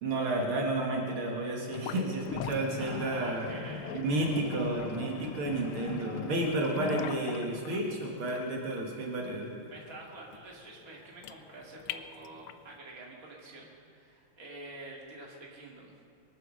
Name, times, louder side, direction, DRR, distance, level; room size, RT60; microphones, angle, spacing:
voice 1, 0.0-9.5, right 2 dB, 75° right, -1 dB, 2.6 m, -31 dB
sound 1, 1.7-12.7, left 10 dB, 80° left, 1.5 m, -41 dB
voice 2, 2.8-4.3 9.7-16.0, right 2 dB, 40° right, -2 dB, 2.7 m, -47 dB
23.0 x 9.1 x 6.4 m, 2.3 s
omnidirectional pair, 2.4 m